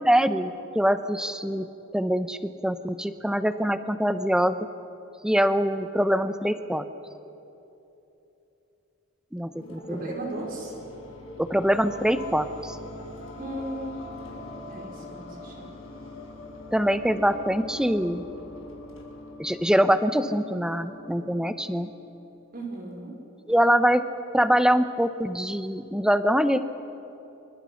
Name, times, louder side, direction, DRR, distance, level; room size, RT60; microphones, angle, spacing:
voice 1, 0.0-4.6 5.2-6.8 9.3-10.0 11.4-12.8 16.7-18.3 19.4-21.9 23.5-24.0 24.3-26.6, equal, 5° right, 10 dB, 0.7 m, -24 dB
sound 1, 9.5-22.5, left 1 dB, 75° left, 5.9 m, -42 dB
voice 2, 9.9-10.7 13.4-14.0 14.7-15.7 22.5-23.1, right 1 dB, 40° right, 0 dB, 5.1 m, -36 dB
26.0 x 25.5 x 6.4 m, 2.9 s
head